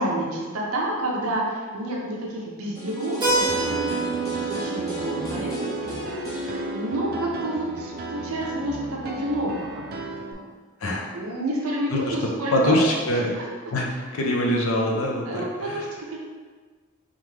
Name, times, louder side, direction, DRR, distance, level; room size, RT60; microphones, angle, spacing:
voice 1, 0.0-4.1 4.5-5.7 6.2-10.3 10.9-13.5 13.9-14.0 15.3-16.2, right 1 dB, 75° right, -3 dB, 0.7 m, -30 dB
sound 1, 2.7-8.7 9.0-9.1, right 2 dB, 15° left, 1.1 m, -33 dB
Keyboard (musical), 3.2-7.7, right 2 dB, 20° right, 1.0 m, -30 dB
Piano, 3.5-10.3, right 3 dB, 45° right, 0.4 m, -36 dB
voice 2, 12.5-13.3 13.7-13.9 14.1-15.8, left 1 dB, 70° left, -1 dB, 0.6 m, -23 dB
3.6 x 3.5 x 3.2 m, 1.4 s
head